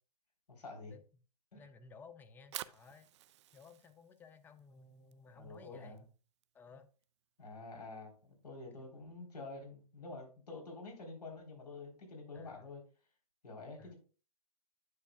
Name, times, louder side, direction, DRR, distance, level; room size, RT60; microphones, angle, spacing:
voice 1, 0.5-0.9 1.5-1.6 5.4-6.0 7.4-12.8 13.4-13.9, left 3 dB, 85° left, 3.6 m, -48 dB
voice 2, 1.5-3.1 3.5-6.1 6.5-6.9 12.3-12.7 13.8-13.9, left 5 dB, 10° left, 0.5 m, -57 dB
Fire, 2.2-8.4, right 13 dB, 45° right, 0.4 m, -53 dB
9.6 x 7.0 x 2.3 m
hypercardioid pair, 135°, 20 cm